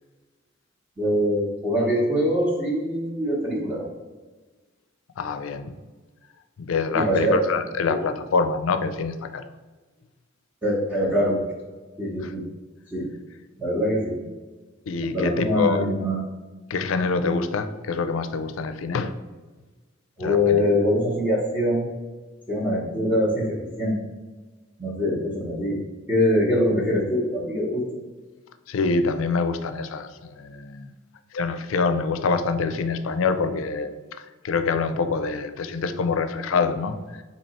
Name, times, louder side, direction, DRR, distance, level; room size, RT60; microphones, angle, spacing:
voice 1, 1.0-3.8 6.9-7.4 10.6-11.4 12.0-12.4 12.9-13.1 13.6-14.2 15.1-16.2 20.2-21.9 22.5-24.0 24.8-25.8 26.1-27.8, left 1 dB, 10° right, -5 dB, 0.8 m, -23 dB
voice 2, 5.2-5.7 6.6-9.5 12.2-12.3 14.9-15.8 16.7-19.1 20.2-20.6 28.7-30.9 31.3-33.9 34.2-37.2, left 4 dB, 80° left, 9 dB, 0.4 m, -25 dB
4.5 x 2.8 x 4.1 m, 1.3 s
head